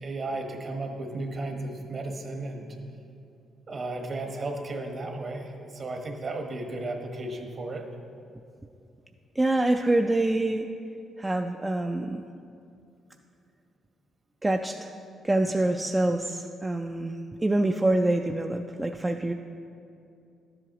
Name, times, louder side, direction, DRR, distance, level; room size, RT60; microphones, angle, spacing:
voice 1, 0.0-2.7 3.7-7.8, right 2 dB, 45° right, 3 dB, 1.1 m, -34 dB
voice 2, 9.4-10.7 11.2-12.2 14.4-14.9 15.2-19.3, right 2 dB, 15° right, 4 dB, 0.3 m, -26 dB
12.0 x 7.7 x 3.0 m, 2.6 s
cardioid pair, 90°, 0 cm